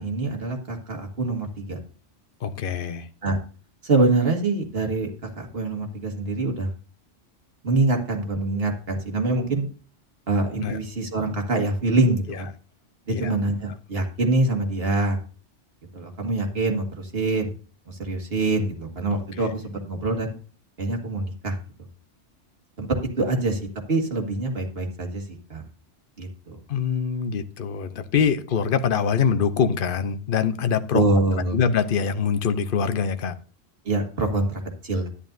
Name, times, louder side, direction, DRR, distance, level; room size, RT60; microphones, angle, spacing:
voice 1, 0.0-1.8 3.2-3.4 3.8-5.1 5.4-6.7 7.6-9.7 10.3-12.5 13.1-15.2 15.9-17.5 17.9-20.3 20.8-21.6 22.8-22.9 23.2-25.2 25.5-25.6 26.2-26.6 30.9-31.6 33.9-35.1, right 2 dB, 55° right, 2.0 m, -25 dB
voice 2, 2.4-3.1 10.6-10.8 12.3-12.4 13.1-13.3 19.4-19.5 26.7-31.0 31.5-33.3, left 7 dB, 55° left, 0.9 m, -24 dB
11.0 x 9.9 x 2.6 m
omnidirectional pair, 1.2 m